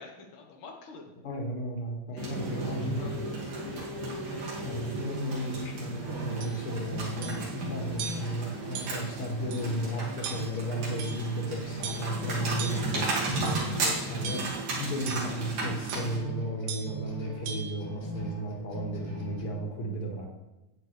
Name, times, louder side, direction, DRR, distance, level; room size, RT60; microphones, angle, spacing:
voice 1, 0.0-1.1 2.1-4.6 13.7-14.0, left 4 dB, 80° left, 1 dB, 1.1 m, -49 dB
voice 2, 1.2-3.3 4.6-13.2 14.1-14.4 14.8-20.3, right 1 dB, 45° left, 0 dB, 2.3 m, -34 dB
sound 1, 2.2-16.2, right 2 dB, 60° right, 3.8 m, -35 dB
sound 2, 3.3-19.4, right 1 dB, 15° left, 0.9 m, -40 dB
sound 3, 6.4-6.6 7.2-7.5 8.0-8.4 8.8-9.1 9.5-9.6 10.2-10.6 11.0-11.4 11.8-12.2 12.6-13.0 13.5-13.7 14.2-14.7 15.1-15.3 15.9-16.1 16.7-17.0 17.5-17.7, right 7 dB, 85° right, 2.9 m, -39 dB
11.5 x 9.1 x 3.4 m, 1.0 s
omnidirectional pair, 4.1 m